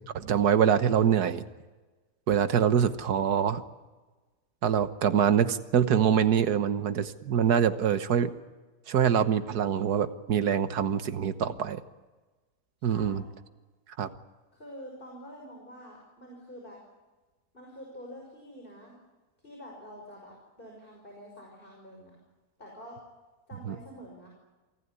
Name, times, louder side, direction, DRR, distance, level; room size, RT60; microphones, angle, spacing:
voice 1, 0.1-1.4 2.3-3.6 4.6-8.3 8.9-11.8 12.8-13.2 14.0-14.1 23.7-23.8, right 8 dB, 85° right, 10 dB, 1.7 m, -24 dB
voice 2, 12.8-13.2 14.5-16.8 17.5-19.0 19.4-22.2 22.6-23.0 23.5-24.3, equal, 35° left, -1 dB, 6.0 m, -47 dB
28.0 x 19.5 x 9.7 m, 1.2 s
omnidirectional pair, 1.6 m